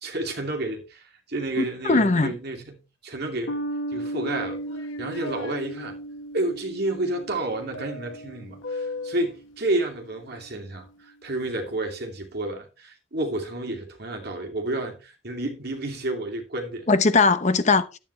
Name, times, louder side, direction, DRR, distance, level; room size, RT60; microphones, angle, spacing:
voice 1, 0.0-3.6 3.9-4.6 5.0-6.0 6.3-16.9, right 2 dB, 55° right, 2.6 m, -30 dB
voice 2, 1.6-2.3 16.9-18.0, left 3 dB, 35° left, 0.8 m, -20 dB
sound 1, 3.5-10.2, right 1 dB, 65° left, 0.9 m, -36 dB
sound 2, 4.3-5.6 7.7-9.4, left 3 dB, 85° left, 1.1 m, -37 dB
11.0 x 9.3 x 3.3 m
head